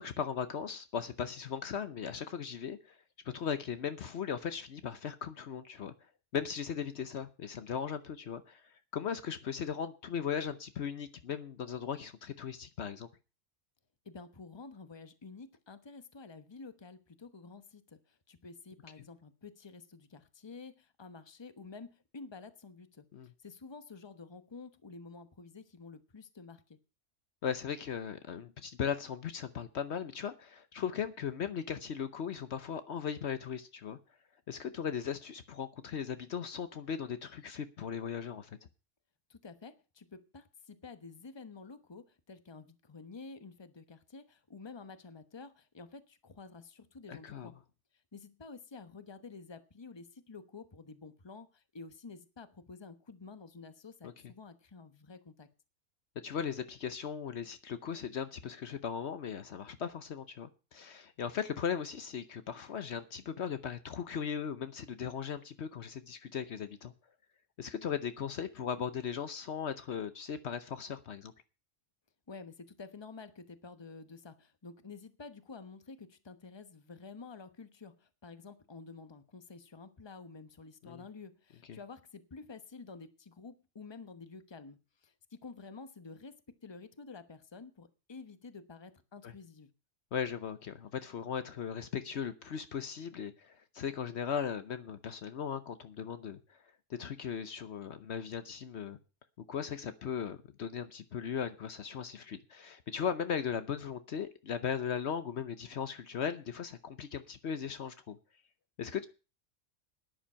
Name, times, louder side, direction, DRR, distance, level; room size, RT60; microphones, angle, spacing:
voice 1, 0.0-3.0 3.2-5.9 6.3-13.1 23.1-23.3 27.4-34.0 34.5-38.5 47.1-47.5 54.0-54.3 56.2-66.9 67.6-71.3 80.8-81.0 81.7-81.8 89.2-89.3 90.1-96.6 96.9-99.0 99.5-108.2 108.8-109.1, left 7 dB, 65° left, 1.0 m, -38 dB
voice 2, 14.0-23.0 23.4-26.8 39.3-47.6 48.1-55.5 72.3-89.7, left 4 dB, 25° left, 1.0 m, -50 dB
11.5 x 10.5 x 5.6 m
omnidirectional pair, 1.3 m